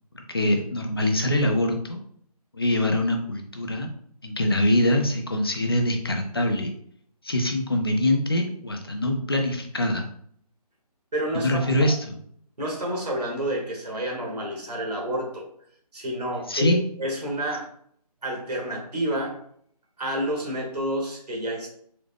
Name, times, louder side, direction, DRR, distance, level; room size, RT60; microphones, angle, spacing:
voice 1, 0.1-2.0 2.5-3.9 4.2-6.7 7.2-10.1 11.3-12.0 16.5-16.8, left 1 dB, 35° left, 3 dB, 0.5 m, -24 dB
voice 2, 11.1-11.9 12.6-15.5 15.9-17.7 18.2-19.4 20.0-21.7, right 1 dB, 80° right, -1 dB, 1.5 m, -29 dB
3.8 x 2.1 x 3.3 m, 0.63 s
hypercardioid pair, 180°, 20 cm